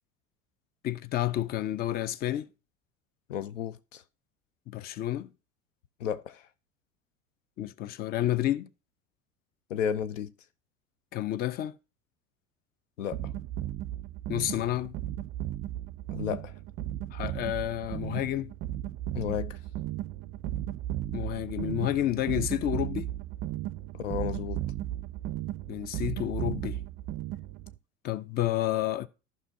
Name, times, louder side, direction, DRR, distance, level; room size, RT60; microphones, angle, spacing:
voice 1, 0.8-2.5 4.7-5.3 7.6-8.7 11.1-11.7 14.3-14.9 17.1-18.5 21.1-23.1 25.7-26.8 28.0-29.1, left 13 dB, 25° left, 0.4 m, -30 dB
voice 2, 3.3-4.0 6.0-6.4 9.7-10.3 13.0-13.2 16.1-16.5 19.1-19.6 23.9-24.6, left 8 dB, 65° left, 0.6 m, -32 dB
sound 1, 13.1-27.8, right 13 dB, 35° right, 0.4 m, -35 dB
14.5 x 5.5 x 2.7 m
figure-of-eight pair, 70°, 40 cm